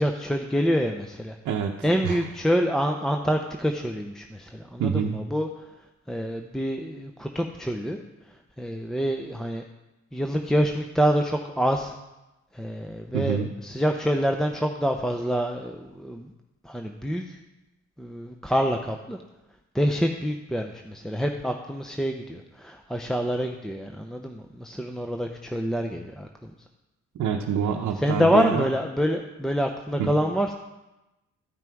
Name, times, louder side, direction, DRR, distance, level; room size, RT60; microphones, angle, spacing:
voice 1, 0.0-1.4 1.8-5.5 6.1-8.0 8.6-9.6 10.1-11.9 12.5-16.3 16.6-17.4 18.0-19.2 19.7-26.5 28.0-30.5, equal, ahead, 3 dB, 0.6 m, -26 dB
voice 2, 1.4-2.2 4.8-5.2 13.1-13.5 27.2-28.7 30.0-30.1, right 7 dB, 75° right, 0 dB, 0.8 m, -26 dB
13.5 x 5.9 x 4.6 m, 0.98 s
cardioid pair, 90°, 30 cm